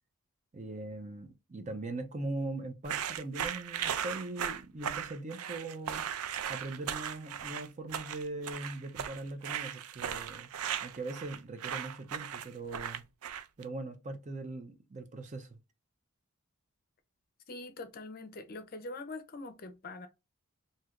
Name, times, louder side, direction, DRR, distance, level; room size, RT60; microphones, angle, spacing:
voice 1, 0.5-6.1 6.5-10.5 10.8-13.0 13.6-15.6, right 2 dB, 35° right, 0.5 m, -40 dB
sound 1, 2.8-13.6, right 9 dB, 85° right, 0.4 m, -37 dB
voice 2, 17.5-20.1, left 2 dB, 40° left, 0.5 m, -43 dB
3.2 x 2.7 x 2.4 m
head